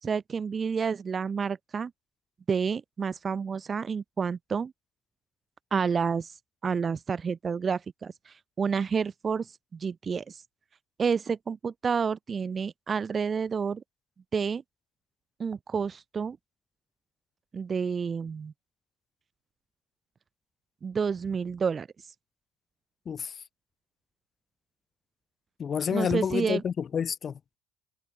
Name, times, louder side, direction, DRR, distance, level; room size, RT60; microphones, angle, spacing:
voice 1, 0.0-1.9 2.5-4.7 5.7-6.3 6.6-10.4 11.0-13.8 14.3-14.6 15.4-16.4 17.5-18.5 20.8-21.9 25.9-26.6, right 6 dB, 35° right, 5.1 m, -29 dB
voice 2, 25.6-27.6, left 7 dB, 45° left, 7.9 m, -29 dB
figure-of-eight pair, 55°, 0 cm